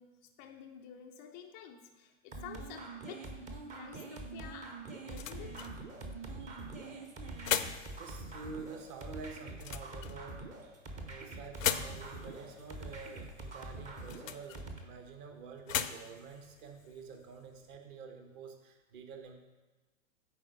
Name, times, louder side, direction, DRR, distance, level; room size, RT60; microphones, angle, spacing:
voice 1, 0.0-5.7 7.1-7.6 10.9-11.3, left 8 dB, 15° left, 2 dB, 0.3 m, -51 dB
sound 1, 2.3-14.8, right 2 dB, 20° right, 0.7 m, -45 dB
sound 2, 4.4-17.8, left 9 dB, 80° left, 0.6 m, -41 dB
voice 2, 8.0-10.4 11.0-19.3, right 5 dB, 40° right, 4 dB, 1.2 m, -48 dB
9.0 x 4.0 x 5.3 m, 1.2 s
figure-of-eight pair, 110°, 39 cm